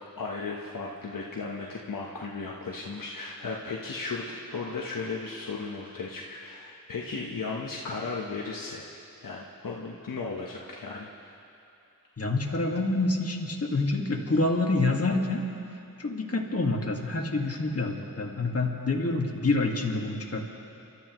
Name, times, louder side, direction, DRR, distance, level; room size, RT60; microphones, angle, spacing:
voice 1, 0.2-8.8 9.2-11.3, left 4 dB, 70° left, -3 dB, 1.2 m, -35 dB
voice 2, 12.2-15.4 16.0-20.4, left 2 dB, 45° left, 0 dB, 1.9 m, -27 dB
28.5 x 13.0 x 3.1 m, 2.7 s
wide cardioid pair, 65°, 35 cm